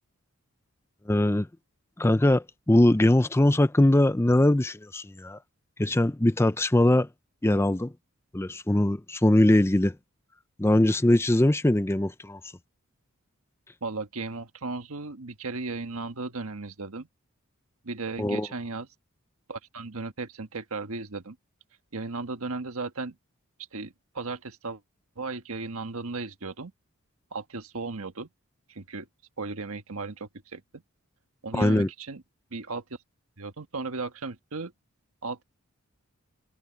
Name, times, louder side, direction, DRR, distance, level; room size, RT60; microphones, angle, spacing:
voice 1, 1.1-1.5 2.0-5.4 5.8-7.1 7.4-7.9 8.3-10.0 10.6-12.4 18.2-18.5 31.5-31.9, left 1 dB, 10° left, 0.5 m, -21 dB
voice 2, 13.8-17.1 17.8-18.9 19.5-21.4 21.9-23.1 23.7-24.8 25.2-26.7 27.3-28.3 28.7-29.1 29.4-30.8 31.4-32.2 32.5-32.8 33.4-34.7 35.2-35.4, right 3 dB, 75° right, 1.5 m, -35 dB
head